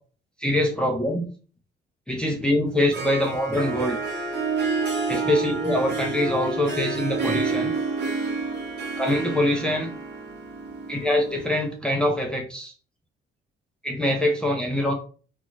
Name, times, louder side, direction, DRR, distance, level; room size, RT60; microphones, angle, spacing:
voice 1, 0.4-1.2 2.1-4.0 5.1-7.7 9.0-9.9 10.9-12.7 13.8-14.9, left 1 dB, 5° left, 0 dB, 0.6 m, -24 dB
Harp, 2.7-11.6, right 4 dB, 60° right, 1.0 m, -29 dB
2.5 x 2.2 x 3.1 m, 0.38 s
cardioid pair, 90°, 20 cm